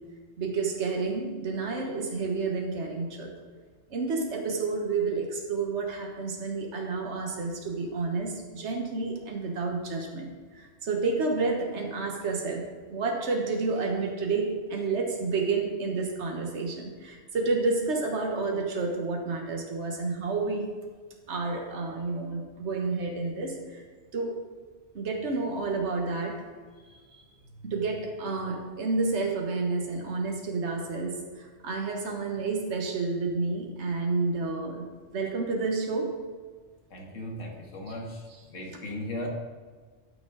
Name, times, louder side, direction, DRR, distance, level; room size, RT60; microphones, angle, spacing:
voice 1, 0.4-3.3 3.9-20.7 21.3-23.8 24.1-24.4 24.9-26.4 27.1-27.2 27.6-34.9 35.1-36.2, right 3 dB, 65° right, 1 dB, 1.5 m, -30 dB
voice 2, 36.9-38.2 38.5-39.3, left 1 dB, 85° left, 1 dB, 1.9 m, -37 dB
12.5 x 6.3 x 3.9 m, 1.5 s
omnidirectional pair, 1.3 m